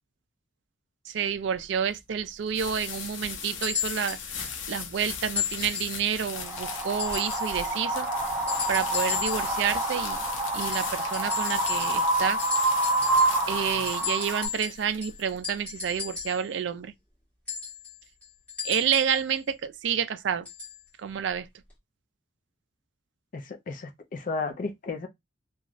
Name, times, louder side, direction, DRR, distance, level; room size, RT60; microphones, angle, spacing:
voice 1, 1.1-8.1 8.7-10.2 10.5-12.4 13.5-16.9 18.6-20.5 21.0-21.5, right 8 dB, 65° right, 0.3 m, -29 dB
sound 1, 1.4-16.2, left 6 dB, 80° left, 0.7 m, -39 dB
sound 2, 3.6-4.3 5.4-6.0 7.0-7.5 8.5-9.6 10.6-12.1 12.4-13.5 13.9-16.4 17.5-19.2 20.5-20.8 21.7-21.8, left 8 dB, 10° left, 1.6 m, -34 dB
Wind, 6.3-14.5, right 2 dB, 10° right, 0.6 m, -28 dB
voice 2, 23.3-25.1, left 3 dB, 40° left, 0.4 m, -33 dB
3.0 x 2.3 x 2.4 m
head